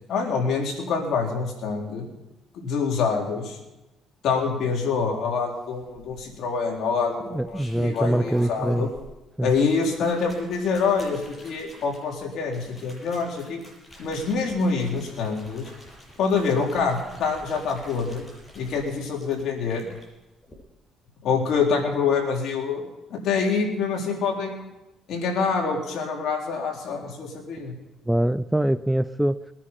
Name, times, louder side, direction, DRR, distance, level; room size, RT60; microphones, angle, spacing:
voice 1, 0.1-2.1 2.6-3.6 4.2-8.9 9.4-13.6 14.0-15.7 16.2-18.2 18.5-19.9 21.2-22.8 23.1-24.6 25.1-27.7, left 5 dB, 65° left, 0 dB, 4.0 m, -26 dB
sound 1, 5.8-6.5 7.3-9.1 9.4-20.0 20.4-20.5, right 1 dB, 15° left, 8.0 m, -43 dB
voice 2, 7.3-8.9 9.4-9.5 28.1-29.4, right 1 dB, 5° right, 15 dB, 0.5 m, -24 dB
22.0 x 10.0 x 5.7 m, 1.0 s
cardioid pair, 100°, 0 cm